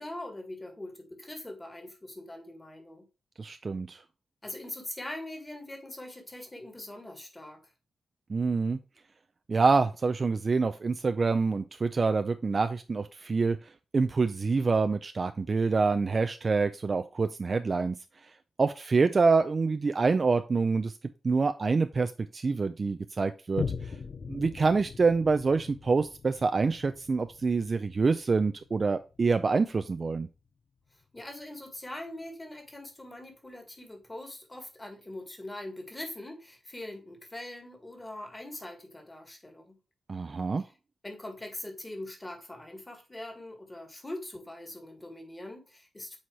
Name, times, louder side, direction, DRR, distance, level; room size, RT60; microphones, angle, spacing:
voice 1, 0.0-3.1 4.4-7.6 31.1-39.8 41.0-46.2, left 1 dB, 15° left, 1.8 m, -42 dB
voice 2, 3.4-4.0 8.3-8.8 9.5-13.6 13.9-18.0 18.6-20.9 21.2-23.7 24.3-30.3 40.1-40.6, right 4 dB, 35° right, 0.4 m, -26 dB
Boom, 23.6-30.5 31.0-31.1, left 5 dB, 45° left, 0.6 m, -41 dB
7.6 x 4.3 x 3.1 m
wide cardioid pair, 135°, 0 cm